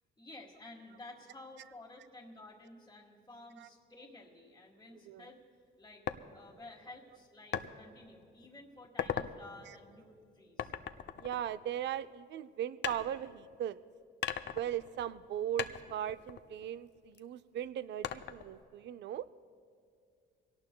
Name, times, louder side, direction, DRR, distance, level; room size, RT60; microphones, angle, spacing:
voice 1, 0.2-5.4 5.8-6.1 6.3-10.7, left 2 dB, 15° left, -5 dB, 1.7 m, -53 dB
sound 1, 6.1-6.2 7.5-7.7 8.2-8.5 8.8-9.3 10.6-12.1 12.8-13.7 14.2-15.3 15.6-17.2 18.0-18.6, left 9 dB, 60° left, 0.6 m, -39 dB
voice 2, 11.2-13.8 14.5-19.3, right 10 dB, 65° right, 14 dB, 0.4 m, -38 dB
23.5 x 18.0 x 2.3 m, 2.2 s
cardioid pair, 90°, 20 cm